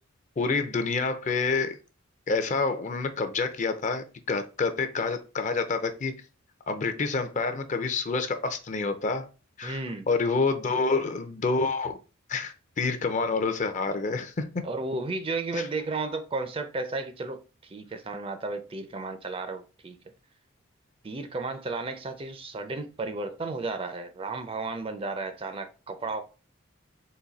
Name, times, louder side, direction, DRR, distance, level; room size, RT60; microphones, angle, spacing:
voice 1, 0.4-1.8 2.3-6.1 6.7-9.3 9.6-9.8 10.1-12.0 12.3-14.6 15.5-15.7, left 4 dB, 35° left, 0.5 m, -28 dB
voice 2, 9.6-10.1 14.6-20.0 21.0-26.2, right 3 dB, 25° right, 0.4 m, -33 dB
4.0 x 2.6 x 3.9 m
head